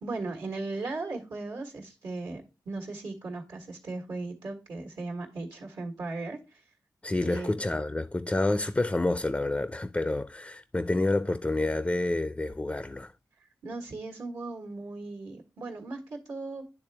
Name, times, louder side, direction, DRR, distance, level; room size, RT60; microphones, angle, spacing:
voice 1, 0.0-6.6 7.2-7.6 13.6-16.7, right 3 dB, 80° right, 1.4 m, -37 dB
voice 2, 7.0-13.1, left 2 dB, 20° left, 0.4 m, -28 dB
10.0 x 3.4 x 3.3 m
cardioid pair, 45°, 7 cm